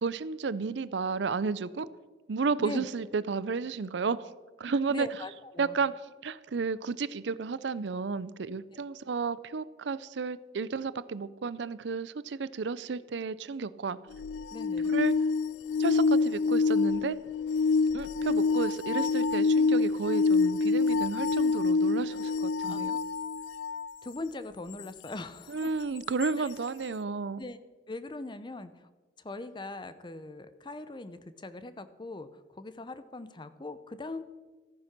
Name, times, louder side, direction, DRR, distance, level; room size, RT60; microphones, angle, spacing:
voice 1, 0.0-1.9 2.3-4.3 4.6-5.1 5.6-5.9 6.2-14.0 14.8-15.1 15.8-17.2 17.9-23.0 25.5-27.4, right 4 dB, 75° right, 17 dB, 0.5 m, -32 dB
voice 2, 4.9-5.8 8.7-8.8 14.5-14.9 22.6-22.8 24.0-25.7 26.4-26.5 27.4-27.6 27.9-28.9 29.2-34.2, left 2 dB, 25° left, 12 dB, 0.6 m, -41 dB
sound 1, 14.1-23.9 26.2-26.3, left 4 dB, 80° left, 0.3 m, -26 dB
14.0 x 9.6 x 6.0 m, 1.3 s
head